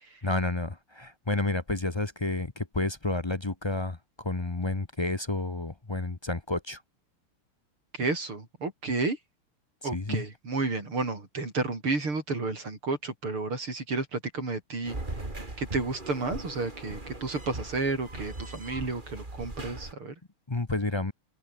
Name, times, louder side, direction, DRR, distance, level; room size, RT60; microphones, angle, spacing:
voice 1, 0.2-6.8 9.9-10.2 20.5-21.1, left 2 dB, 30° left, 0.5 m, -30 dB
voice 2, 7.9-9.2 9.8-15.0 15.6-20.1, right 3 dB, 75° right, 6.6 m, -31 dB
sound 1, 14.9-19.9, right 2 dB, 20° right, 3.6 m, -39 dB
open air
omnidirectional pair, 2.4 m